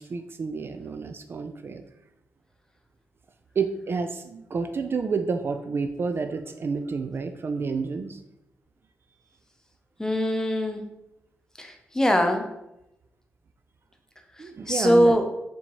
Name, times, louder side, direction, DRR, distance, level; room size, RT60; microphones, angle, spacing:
voice 1, 0.0-1.8 3.6-8.2 14.4-15.1, right 4 dB, 45° right, 7 dB, 0.3 m, -29 dB
voice 2, 10.0-10.8 11.6-12.5 14.7-15.3, equal, 10° left, 4 dB, 0.6 m, -22 dB
4.3 x 2.8 x 3.0 m, 0.88 s
cardioid pair, 65°, 5 cm